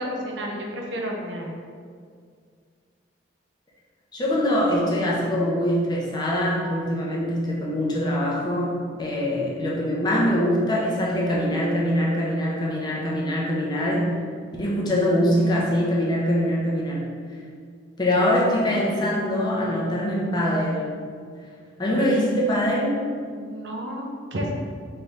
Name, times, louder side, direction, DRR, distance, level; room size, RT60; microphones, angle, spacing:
voice 1, 0.0-1.5 23.4-24.5, equal, 70° right, 0 dB, 0.7 m, -31 dB
voice 2, 4.1-14.2 14.6-17.1 18.0-20.9 21.8-23.1, equal, 20° left, -4 dB, 0.7 m, -23 dB
3.6 x 3.3 x 4.0 m, 2.1 s
head